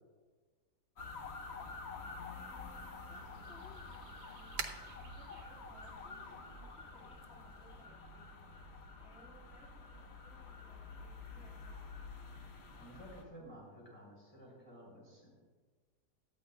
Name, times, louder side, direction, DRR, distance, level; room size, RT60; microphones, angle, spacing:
sound 1, 1.0-13.2, left 4 dB, 45° left, 1.2 m, -49 dB
voice 1, 1.9-8.4 9.0-11.8, right 1 dB, ahead, -7 dB, 1.9 m, -64 dB
sound 2, 2.6-7.8, right 6 dB, 70° right, 1.4 m, -50 dB
voice 2, 12.8-15.3, equal, 20° left, -4 dB, 4.2 m, -53 dB
17.5 x 11.5 x 2.3 m, 1.4 s
omnidirectional pair, 1.7 m